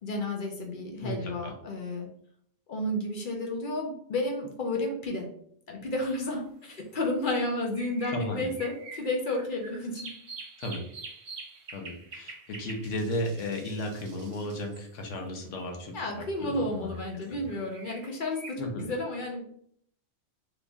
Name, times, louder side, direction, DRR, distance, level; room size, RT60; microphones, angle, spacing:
voice 1, 0.0-2.1 2.7-5.3 5.7-10.1 15.9-19.6, left 1 dB, 50° left, 1 dB, 0.6 m, -32 dB
voice 2, 1.0-1.5 8.1-8.5 10.6-10.8 11.7-17.5 18.6-18.9, left 1 dB, 75° left, 3 dB, 1.0 m, -35 dB
sound 1, 6.3-6.4 7.3-15.7 16.9-18.5, right 3 dB, 60° right, 0.9 m, -46 dB
3.0 x 2.5 x 3.5 m, 0.66 s
omnidirectional pair, 1.3 m